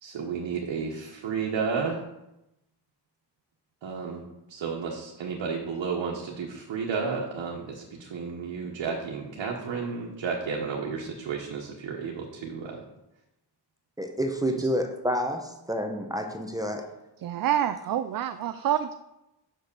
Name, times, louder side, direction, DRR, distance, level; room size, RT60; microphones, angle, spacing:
voice 1, 0.0-2.0 3.8-4.2 4.5-12.8, right 5 dB, 80° right, -1 dB, 1.3 m, -32 dB
voice 2, 14.0-16.8, equal, 10° right, 3 dB, 0.9 m, -29 dB
voice 3, 17.2-18.9, right 10 dB, 50° right, 10 dB, 0.5 m, -27 dB
5.9 x 5.8 x 6.8 m, 0.91 s
cardioid pair, 105°, 44 cm